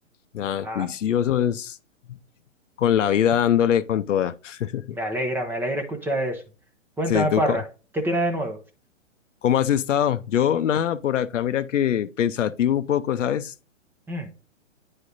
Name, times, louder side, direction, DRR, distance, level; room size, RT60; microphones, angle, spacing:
voice 1, 0.3-1.8 2.8-5.0 7.1-7.6 9.4-13.5, left 10 dB, 70° left, 0.7 m, -23 dB
voice 2, 4.9-6.4 7.0-7.6 7.9-8.6 14.1-14.4, equal, 5° right, 0.7 m, -26 dB
9.7 x 3.3 x 3.9 m
hypercardioid pair, 135°, 39 cm